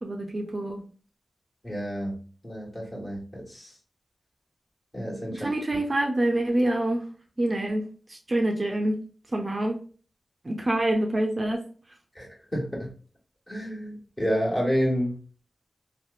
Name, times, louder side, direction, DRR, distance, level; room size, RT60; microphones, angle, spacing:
voice 1, 0.0-0.8 5.4-7.1 7.4-9.0 9.3-9.8 10.4-11.7, right 1 dB, 40° right, 0.4 m, -26 dB
voice 2, 1.6-3.7 4.9-5.5 12.1-12.9 13.5-15.2, equal, 30° left, 1.3 m, -30 dB
2.8 x 2.0 x 2.3 m
cardioid pair, 50°, 0 cm